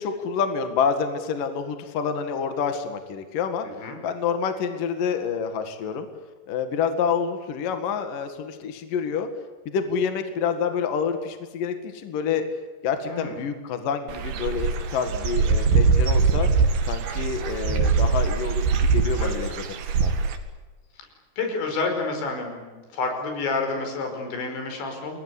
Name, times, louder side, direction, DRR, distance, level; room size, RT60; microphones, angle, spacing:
voice 1, 0.0-3.7 4.0-6.1 6.5-9.3 9.7-12.4 12.8-16.5 16.9-19.5 19.9-20.1, left 6 dB, 55° left, 8 dB, 3.2 m, -27 dB
voice 2, 13.1-13.4 19.2-19.4 21.0-21.1 21.4-25.2, left 3 dB, 85° left, 4 dB, 7.5 m, -29 dB
Dog / Bird, 14.1-20.4, right 5 dB, 65° right, 3.9 m, -22 dB
28.5 x 21.0 x 8.4 m, 1.3 s
omnidirectional pair, 5.1 m